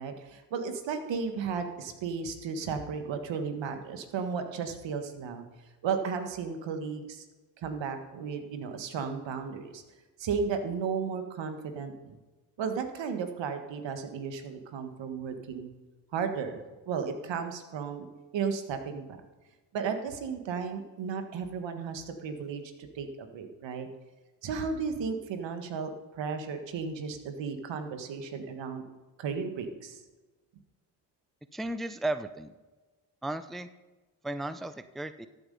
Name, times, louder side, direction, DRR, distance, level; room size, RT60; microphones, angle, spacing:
voice 1, 0.0-5.5 5.8-7.2 7.6-9.8 10.2-12.2 12.6-15.7 16.1-18.1 18.3-19.2 19.7-22.6 22.9-23.1 23.3-23.9 24.4-28.8 29.2-30.0, right 6 dB, 70° right, 7 dB, 1.7 m, -34 dB
voice 2, 31.5-32.5 33.2-33.7 34.2-35.3, right 2 dB, ahead, 12 dB, 0.6 m, -34 dB
14.0 x 8.1 x 5.4 m, 1.2 s
supercardioid pair, 70°, 46 cm